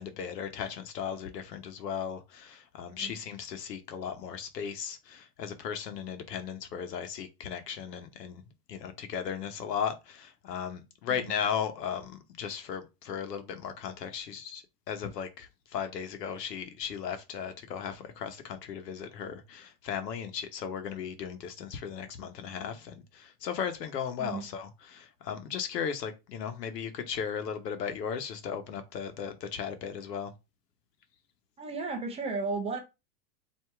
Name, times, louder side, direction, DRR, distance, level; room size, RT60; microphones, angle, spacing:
voice 1, 0.0-8.4 8.7-30.3, left 7 dB, 85° left, 1.0 m, -36 dB
voice 2, 31.6-32.8, right 4 dB, 15° right, 0.4 m, -34 dB
4.5 x 2.7 x 3.4 m
hypercardioid pair, 120°, 47 cm